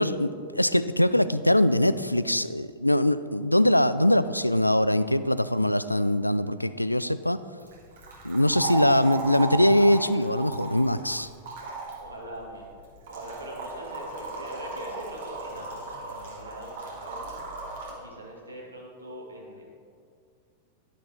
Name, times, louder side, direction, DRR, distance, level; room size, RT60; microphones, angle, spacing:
voice 1, 0.0-7.4 8.2-11.3, left 1 dB, 85° left, 14 dB, 0.3 m, -22 dB
sound 1, 7.6-17.9, right 3 dB, 60° right, 2.0 m, -36 dB
voice 2, 12.0-12.7 13.1-17.4 17.9-19.6, right 1 dB, 80° right, -3 dB, 2.2 m, -42 dB
11.0 x 10.0 x 3.6 m, 2.2 s
figure-of-eight pair, 90°, 0 cm